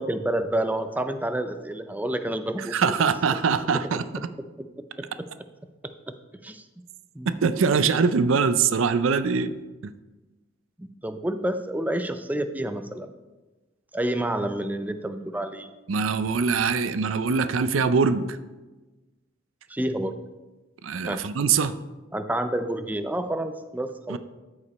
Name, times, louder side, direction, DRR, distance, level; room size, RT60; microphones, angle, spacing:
voice 1, 0.0-2.9 5.8-6.1 6.4-6.7 7.1-7.3 10.8-13.1 13.9-15.7 19.7-20.2 21.1-21.2 22.1-24.2, right 1 dB, 10° right, 9 dB, 0.4 m, -29 dB
voice 2, 2.6-4.0 7.4-9.5 9.8-9.9 15.9-18.4 20.8-21.7 24.1-24.2, right 5 dB, 75° right, 12 dB, 0.5 m, -23 dB
13.0 x 4.9 x 4.2 m, 1.2 s
head